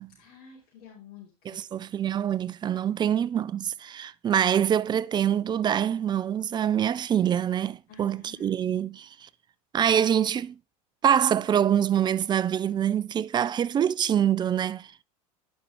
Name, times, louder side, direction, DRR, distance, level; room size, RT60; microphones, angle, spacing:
voice 1, 0.2-1.9 7.9-8.5, left 6 dB, 50° left, 3.3 m, -51 dB
voice 2, 1.5-9.3 9.7-10.6 11.0-14.9, right 9 dB, 25° right, 0.4 m, -25 dB
10.5 x 5.3 x 3.3 m
hypercardioid pair, 100°, 20 cm